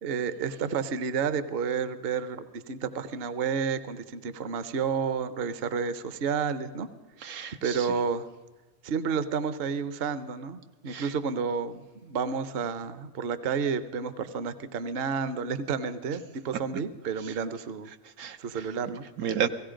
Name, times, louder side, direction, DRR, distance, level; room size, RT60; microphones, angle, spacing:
voice 1, 0.0-6.9 7.6-8.2 8.8-17.9 18.4-19.0, right 6 dB, 50° right, 13 dB, 0.9 m, -30 dB
voice 2, 7.2-7.9 10.9-11.1 17.2-17.3 18.2-18.6 19.2-19.5, right 8 dB, 80° right, 8 dB, 1.3 m, -32 dB
17.0 x 16.0 x 5.1 m, 1.3 s
omnidirectional pair, 1.5 m